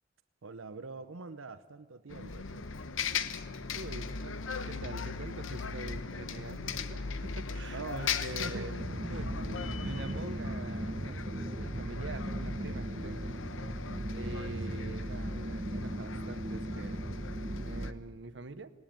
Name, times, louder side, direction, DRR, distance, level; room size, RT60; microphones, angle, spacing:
voice 1, 0.4-2.6 7.7-8.7 9.1-9.2 9.8-9.9, right 3 dB, 80° right, 11 dB, 0.8 m, -44 dB
Bus, 2.1-17.9, left 5 dB, 70° left, 1.0 m, -39 dB
voice 2, 3.7-8.8 9.1-9.4 9.8-13.3 14.1-17.0 17.5-18.7, right 2 dB, 60° right, 13 dB, 1.0 m, -44 dB
sound 1, 8.8-17.9, right 1 dB, 35° right, 1.0 m, -37 dB
19.0 x 18.5 x 9.1 m, 1.3 s
head